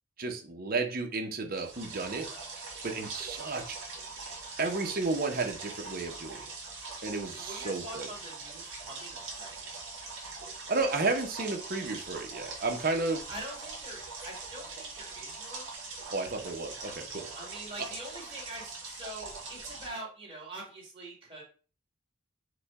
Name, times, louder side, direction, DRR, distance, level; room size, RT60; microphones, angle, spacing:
voice 1, 0.2-2.3 2.8-3.8 4.6-6.5 7.0-8.1 10.5-13.2 16.1-17.3 17.8-17.9, right 3 dB, 45° right, 4 dB, 0.7 m, -32 dB
sound 1, 1.5-19.9, right 3 dB, 65° right, 1.6 m, -42 dB
voice 2, 7.3-9.6 13.3-15.7 17.3-21.4, right 1 dB, 25° right, -4 dB, 1.9 m, -44 dB
4.9 x 2.2 x 4.7 m, 0.38 s
head